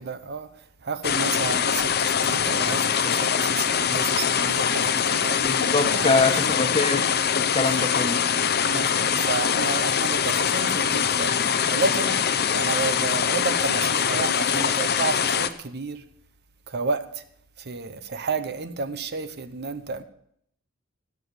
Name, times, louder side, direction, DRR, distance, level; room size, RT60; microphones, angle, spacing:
voice 1, 0.1-0.5 0.8-5.4 5.9-6.5 7.5-7.8 8.6-11.3 11.7-12.2 12.5-16.0 16.7-17.1 17.6-20.0, right 4 dB, 50° right, 0.9 m, -31 dB
sound 1, 1.0-15.5, left 7 dB, 50° left, 0.7 m, -23 dB
voice 2, 5.3-7.0 7.4-8.2, left 3 dB, 25° left, 1.2 m, -24 dB
17.0 x 6.1 x 8.0 m
head